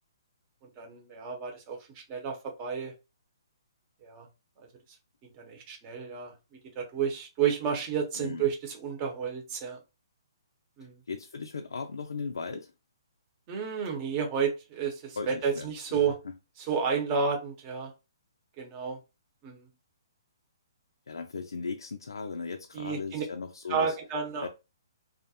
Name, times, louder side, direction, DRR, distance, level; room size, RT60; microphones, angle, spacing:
voice 1, 0.8-2.9 4.0-4.3 4.6-4.7 5.2-6.3 6.7-9.8 10.8-11.0 13.5-16.2 16.6-17.9 18.6-19.0 19.4-19.7 22.7-23.2 23.7-24.5, right 6 dB, 30° right, 0.8 m, -31 dB
voice 2, 11.1-12.7 15.2-15.7 15.9-16.0 21.1-23.9 24.4-24.5, left 4 dB, 85° left, 0.3 m, -37 dB
2.4 x 2.1 x 2.7 m
hypercardioid pair, 145°, 2 cm